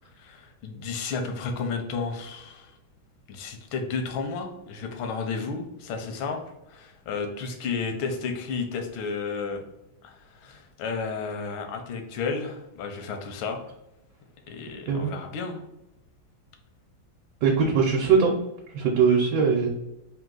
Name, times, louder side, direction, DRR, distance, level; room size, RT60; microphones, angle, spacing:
voice 1, 0.2-2.7 3.3-6.4 6.7-9.6 10.0-13.6 14.5-15.6, left 4 dB, 85° left, 4 dB, 1.5 m, -32 dB
voice 2, 17.4-18.3 18.7-19.7, right 5 dB, 70° right, -1 dB, 1.2 m, -21 dB
3.8 x 2.7 x 3.7 m, 0.89 s
omnidirectional pair, 2.2 m